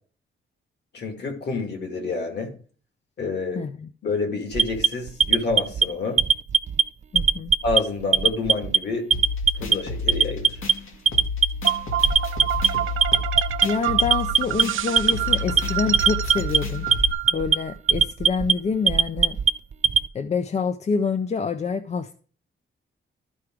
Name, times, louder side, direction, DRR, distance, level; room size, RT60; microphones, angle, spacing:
voice 1, 0.9-2.5 3.2-3.7 4.0-6.2 7.6-9.1 9.6-10.6, left 4 dB, 55° left, 4 dB, 2.5 m, -28 dB
voice 2, 3.5-3.9 7.1-7.5 13.6-16.9 17.3-19.4 20.1-22.1, left 5 dB, 35° left, 10 dB, 0.5 m, -27 dB
Alarm, 4.5-5.8 6.2-6.8 7.1-7.8 8.1-8.8 9.1-9.7 10.1-10.7 11.1-11.7 12.0-12.7 13.0-13.6 14.0-14.6 15.0-15.6 15.9-16.6 16.9-17.5 17.9-18.5 18.9-20.0, right 6 dB, 35° right, 0.4 m, -19 dB
sound 1, 9.1-17.1, left 3 dB, 80° left, 2.1 m, -31 dB
sound 2, 11.6-17.7, right 13 dB, 80° right, 0.7 m, -29 dB
13.0 x 4.9 x 4.6 m, 0.41 s
wide cardioid pair, 165°, 21 cm